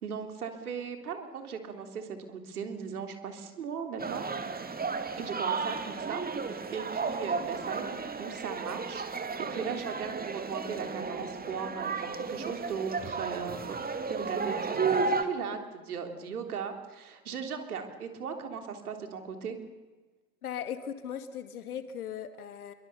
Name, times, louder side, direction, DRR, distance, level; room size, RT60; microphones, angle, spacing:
voice 1, 0.0-4.2 5.2-9.0 9.5-13.8 14.1-19.6, right 6 dB, 80° right, 6 dB, 3.5 m, -38 dB
sound 1, 4.0-15.2, right 4 dB, 20° right, 2.4 m, -33 dB
voice 2, 20.4-22.7, left 8 dB, 80° left, 9 dB, 2.3 m, -38 dB
27.0 x 23.5 x 7.0 m, 1.3 s
figure-of-eight pair, 70°, 44 cm